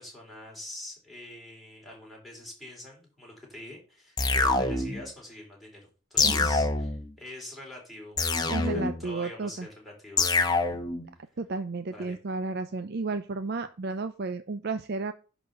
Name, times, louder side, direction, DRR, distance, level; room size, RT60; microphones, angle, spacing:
voice 1, 0.0-5.8 6.1-8.2 8.6-10.5 11.9-12.2, left 1 dB, ahead, -2 dB, 3.9 m, -45 dB
sound 1, 4.2-5.1 6.2-7.1 8.2-9.1 10.2-11.1, left 3 dB, 20° left, 1.0 m, -25 dB
voice 2, 8.5-9.7 11.4-15.1, right 3 dB, 50° right, 9 dB, 0.5 m, -32 dB
10.5 x 4.1 x 6.9 m, 0.35 s
head